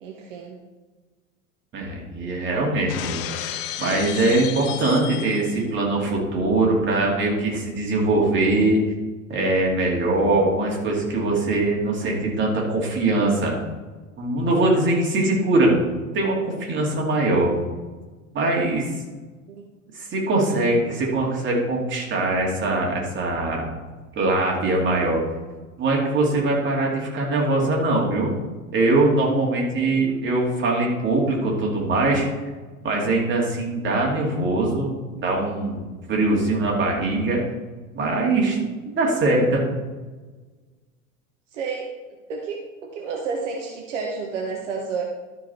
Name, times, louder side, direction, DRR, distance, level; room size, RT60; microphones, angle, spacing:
voice 1, 0.0-0.6 19.5-19.7 29.8-30.0 41.5-41.9 42.3-45.0, right 5 dB, 60° right, 1 dB, 1.3 m, -31 dB
voice 2, 1.7-8.8 9.3-13.5 14.2-15.8 16.1-17.5 18.3-18.9 19.9-23.6 24.1-25.2 25.8-28.3 28.7-32.3 32.8-37.4 37.9-39.6, right 2 dB, 30° right, -2 dB, 2.6 m, -22 dB
Shatter, 2.9-5.6, left 12 dB, 45° left, 0.6 m, -33 dB
12.5 x 5.1 x 4.2 m, 1.3 s
figure-of-eight pair, 85°, 41 cm